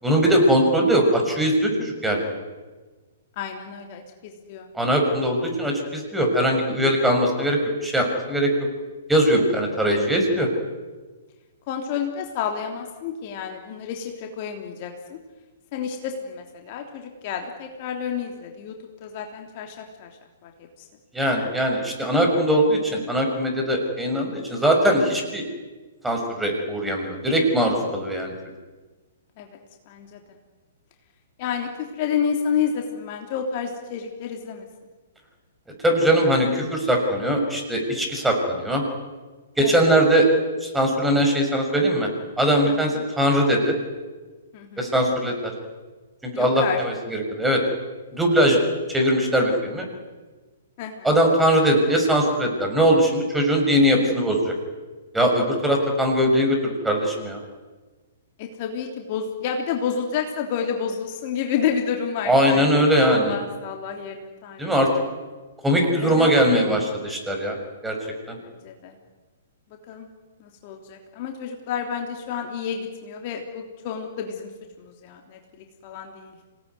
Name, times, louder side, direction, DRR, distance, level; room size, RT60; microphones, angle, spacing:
voice 1, 0.0-2.2 4.7-8.5 9.1-10.5 21.1-25.4 26.0-28.3 35.8-38.8 39.6-40.3 40.6-42.1 42.4-43.7 44.8-45.5 46.2-47.6 48.1-48.6 48.9-49.9 51.0-54.5 55.1-57.4 62.3-63.3 64.6-64.9 65.6-67.6 67.8-68.0 68.3-68.4, equal, 5° right, 2 dB, 6.3 m, -21 dB
voice 2, 3.4-4.7 11.7-15.2 15.7-20.1 20.4-20.5 29.4-29.6 29.9-30.2 31.4-34.6 39.6-39.7 42.6-42.8 44.5-44.9 46.3-46.8 50.8-51.1 58.4-64.7 66.0-66.3 68.6-68.9 69.9-70.1 70.4-74.5 74.8-75.4 75.8-76.4, left 7 dB, 45° left, 3 dB, 3.2 m, -30 dB
26.0 x 19.0 x 9.6 m, 1.3 s
hypercardioid pair, 120°, 0 cm